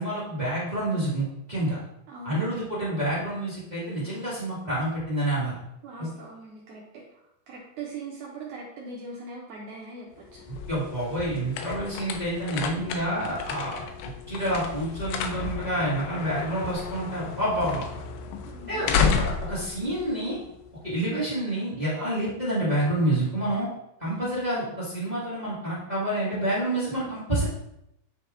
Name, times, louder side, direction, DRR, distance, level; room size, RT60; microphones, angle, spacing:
voice 1, 0.0-1.8 2.2-5.5 6.0-6.1 10.5-13.9 14.3-17.9 18.7-18.9 19.4-20.4 20.8-23.7 24.0-27.4, right 1 dB, 35° right, -9 dB, 0.7 m, -28 dB
voice 2, 2.1-2.6 5.8-10.4 18.4-18.8 24.1-24.4, right 3 dB, 75° right, -3 dB, 1.7 m, -41 dB
sound 1, 10.2-20.9, left 6 dB, 85° left, 2.6 m, -32 dB
9.6 x 3.4 x 3.8 m, 0.82 s
omnidirectional pair, 4.5 m